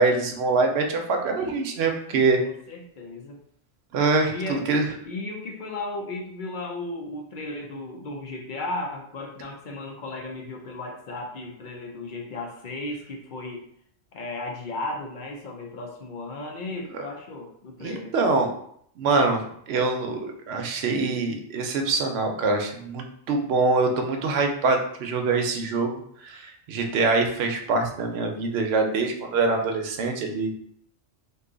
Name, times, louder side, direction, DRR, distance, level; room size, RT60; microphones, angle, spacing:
voice 1, 0.0-2.4 3.9-4.4 4.7-4.9 16.9-17.0 17.8-18.5 19.0-30.5, right 3 dB, 70° right, 3 dB, 0.8 m, -24 dB
voice 2, 2.4-3.4 4.3-4.6 5.0-13.6 14.1-18.2, left 2 dB, 55° left, 1 dB, 0.5 m, -35 dB
2.7 x 2.3 x 3.7 m, 0.66 s
omnidirectional pair, 1.2 m